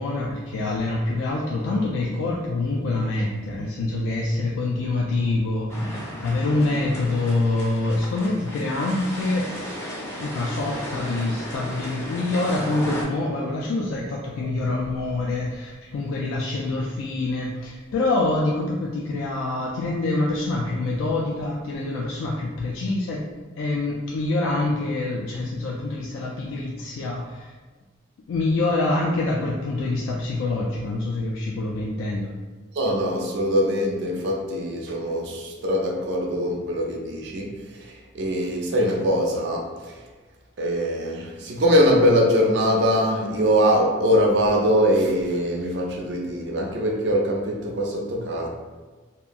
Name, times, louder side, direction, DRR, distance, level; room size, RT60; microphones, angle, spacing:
voice 1, 0.0-9.5 10.2-23.3 23.6-27.5 28.3-32.3, left 2 dB, 90° left, -3 dB, 0.3 m, -26 dB
sound 1, 5.7-13.0, equal, 15° left, 0.4 m, -35 dB
voice 2, 32.7-40.0 40.6-48.5, equal, 60° right, 0 dB, 0.4 m, -22 dB
2.8 x 2.2 x 2.5 m, 1.3 s
head